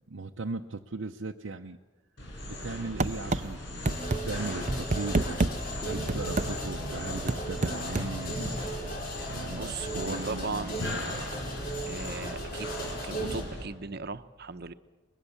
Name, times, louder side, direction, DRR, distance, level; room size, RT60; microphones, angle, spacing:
voice 1, 0.1-1.8 2.5-3.9 4.2-5.4 5.8-10.7, right 3 dB, 85° right, 1 dB, 0.8 m, -38 dB
sound 1, 2.2-13.6, left 1 dB, 65° left, 5.7 m, -38 dB
sound 2, 3.0-3.4 3.9-4.2 4.7-5.5 6.1-6.5 7.3-8.1, right 2 dB, 40° right, 0.7 m, -26 dB
sound 3, 3.9-13.4, right 1 dB, 50° left, 5.2 m, -37 dB
voice 2, 9.4-11.5 11.9-12.7 13.0-14.7, right 4 dB, 55° right, 10 dB, 1.0 m, -38 dB
24.0 x 21.0 x 7.2 m, 1.2 s
head